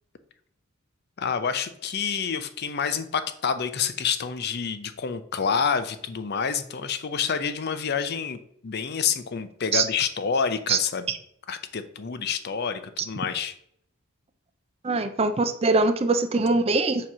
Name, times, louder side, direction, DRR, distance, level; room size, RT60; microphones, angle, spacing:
voice 1, 1.2-11.1 11.5-13.5, left 6 dB, 45° left, 11 dB, 0.5 m, -28 dB
voice 2, 14.8-17.1, right 3 dB, 25° right, 10 dB, 0.4 m, -22 dB
7.1 x 3.0 x 6.0 m, 0.70 s
head